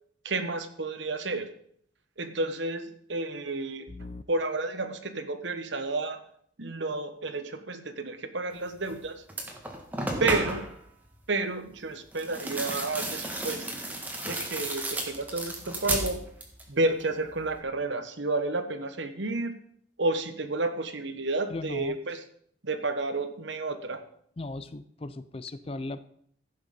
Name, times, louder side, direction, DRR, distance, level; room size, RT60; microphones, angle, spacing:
voice 1, 0.2-1.5 2.2-3.9 4.3-6.2 6.6-9.2 10.2-10.6 11.3-13.7 14.3-16.2 16.7-19.6 20.0-22.2 22.6-24.0, right 2 dB, 65° right, 9 dB, 1.2 m, -31 dB
voice 2, 3.9-4.2 21.5-22.0 24.4-26.0, left 2 dB, 30° left, 14 dB, 0.4 m, -37 dB
sound 1, 8.8-9.0 9.3-10.8 12.1-16.7 17.0-17.6, right 1 dB, 10° right, 1.5 m, -33 dB
15.0 x 6.5 x 5.3 m, 0.65 s
head